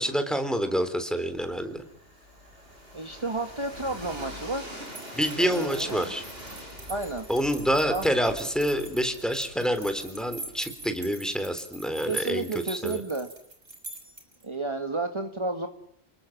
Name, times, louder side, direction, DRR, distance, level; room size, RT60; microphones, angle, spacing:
voice 1, 0.0-1.8 5.1-6.2 7.3-13.0, equal, ahead, 8 dB, 3.7 m, -27 dB
Train, 1.3-11.2, equal, 60° right, 8.1 m, -44 dB
voice 2, 2.9-4.7 5.4-6.1 6.9-7.3 7.9-8.1 12.1-13.3 14.4-15.7, right 3 dB, 25° right, 5 dB, 1.8 m, -31 dB
sound 1, 4.9-14.4, right 2 dB, 85° right, 5.3 m, -43 dB
30.0 x 20.5 x 7.4 m, 0.73 s
omnidirectional pair, 1.1 m